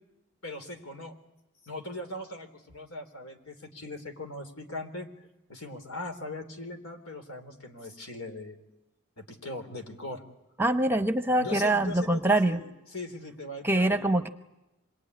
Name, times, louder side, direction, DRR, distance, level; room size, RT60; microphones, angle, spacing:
voice 1, 0.4-1.2 1.6-5.1 5.5-8.6 9.2-10.2 11.4-14.2, left 2 dB, 80° left, 6 dB, 3.6 m, -40 dB
voice 2, 10.6-12.6 13.6-14.3, right 1 dB, 10° right, 9 dB, 0.9 m, -24 dB
26.5 x 21.5 x 9.7 m, 0.96 s
head